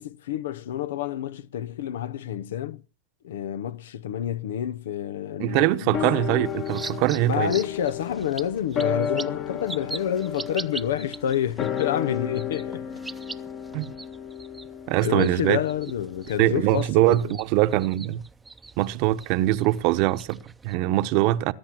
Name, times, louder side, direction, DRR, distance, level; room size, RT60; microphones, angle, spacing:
voice 1, 0.0-2.8 3.2-6.0 7.3-13.0 15.0-17.4, left 10 dB, 85° left, 0.8 m, -28 dB
voice 2, 5.4-7.5 13.7-13.9 14.9-15.6 16.4-18.2 18.8-21.5, right 16 dB, 55° right, 1.0 m, -23 dB
sound 1, 5.9-16.5 16.8-16.9, left 8 dB, 40° left, 1.5 m, -33 dB
sound 2, 6.4-20.7, right 3 dB, 10° right, 0.7 m, -43 dB
19.5 x 9.7 x 6.0 m
supercardioid pair, 130°, 0 cm